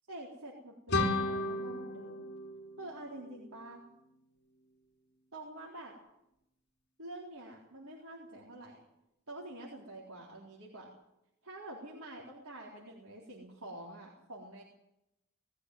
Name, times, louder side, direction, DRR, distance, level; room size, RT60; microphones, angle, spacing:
voice 1, 0.1-2.2 2.8-3.8 5.3-6.0 7.0-8.8 9.3-10.9 11.4-14.6, right 1 dB, 90° right, -3 dB, 4.0 m, -47 dB
sound 1, 0.9-3.7, left 2 dB, 55° left, 2.9 m, -34 dB
20.0 x 14.5 x 9.5 m, 0.85 s
head